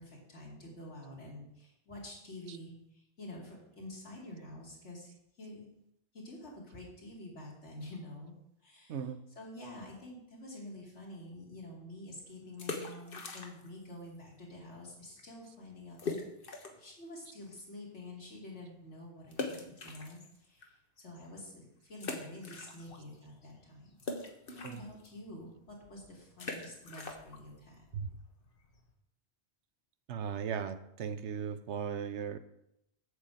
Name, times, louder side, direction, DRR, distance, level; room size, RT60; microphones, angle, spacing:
voice 1, 0.0-5.7 6.1-8.3 8.6-9.0 9.4-16.0 16.8-23.9 24.5-27.8, left 1 dB, 85° left, -3 dB, 3.0 m, -48 dB
sound 1, 12.5-13.8 14.1-14.2 14.8-14.9 15.2-15.3 16.0-16.9 17.4-17.5 19.3-20.6 21.1-21.2 22.0-23.2 23.4-28.9, left 3 dB, 55° left, 1.4 m, -42 dB
voice 2, 30.1-32.4, right 7 dB, 85° right, 11 dB, 1.0 m, -37 dB
8.0 x 5.4 x 7.7 m, 0.79 s
omnidirectional pair, 1.2 m